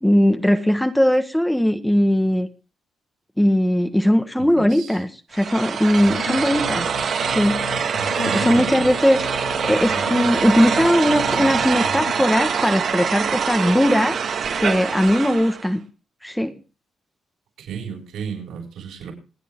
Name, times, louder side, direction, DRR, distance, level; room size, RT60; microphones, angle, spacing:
voice 1, 0.0-2.5 3.4-6.9 7.2-7.6 8.2-14.2 14.6-15.8 16.2-16.5, equal, 5° left, 7 dB, 1.4 m, -19 dB
voice 2, 4.4-5.0 8.0-8.8 17.6-19.1, right 7 dB, 85° right, -1 dB, 7.2 m, -33 dB
sound 1, 5.3-15.7, right 6 dB, 60° right, 2.0 m, -24 dB
sound 2, 6.0-12.1, left 6 dB, 75° left, 2.0 m, -35 dB
27.0 x 9.1 x 3.8 m, 0.37 s
cardioid pair, 90°, 0 cm